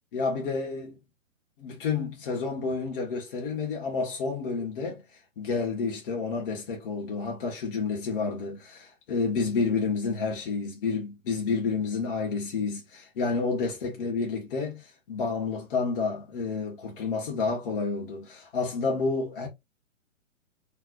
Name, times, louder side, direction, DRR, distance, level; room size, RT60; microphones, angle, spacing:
voice 1, 0.1-1.0 1.6-5.0 5.4-19.5, left 4 dB, 40° left, 1.6 m, -30 dB
4.0 x 3.5 x 2.6 m
figure-of-eight pair, 125°, 41 cm